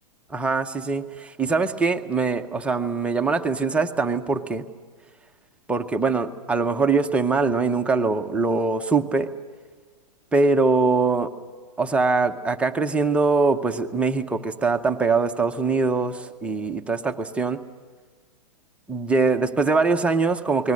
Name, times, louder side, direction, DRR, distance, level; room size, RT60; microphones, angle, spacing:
voice 1, 0.3-4.6 5.7-9.3 10.3-11.3 11.8-17.6 18.9-20.7, right 4 dB, 5° right, 4 dB, 0.7 m, -22 dB
29.0 x 20.5 x 6.4 m, 1.5 s
hypercardioid pair, 155°, 21 cm